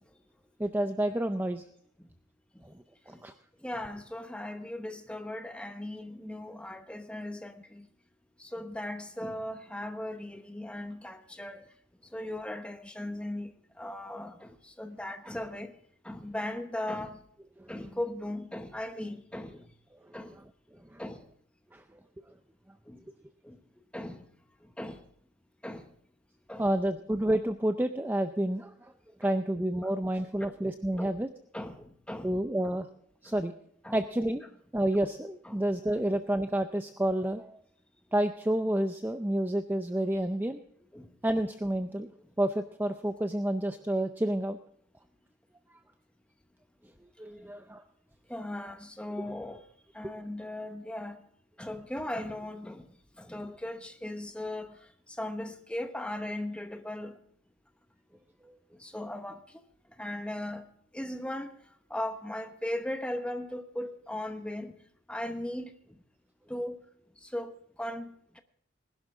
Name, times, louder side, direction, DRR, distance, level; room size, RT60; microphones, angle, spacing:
voice 1, 0.6-1.6 3.1-3.3 17.6-17.7 20.9-21.0 21.7-21.8 26.6-28.9 29.2-31.3 32.2-32.9 33.2-33.5 33.9-34.4 34.7-37.6 38.1-40.6 41.2-42.1 42.4-44.6 47.2-47.8 58.4-58.5, right 1 dB, 10° right, 0.5 m, -29 dB
voice 2, 3.6-7.9 8.4-11.6 12.1-13.5 13.8-15.7 16.0-17.2 17.7-19.6 20.1-20.3 21.0-21.2 22.9-23.0 23.4-23.6 23.9-24.2 24.8-25.0 25.6-25.9 26.5-26.7 29.2-29.3 29.8-29.9 30.4-30.5 31.0-31.1 31.5-32.3 33.8-33.9 35.4-35.6 40.9-41.1 48.3-49.6 49.9-51.2 51.6-52.8 53.2-54.7 55.2-57.2 58.8-59.4 60.0-60.7 60.9-61.5 61.9-64.7 65.1-65.7 66.5-66.8 67.3-68.4, left 1 dB, 5° left, 0.9 m, -37 dB
19.5 x 11.5 x 3.6 m
head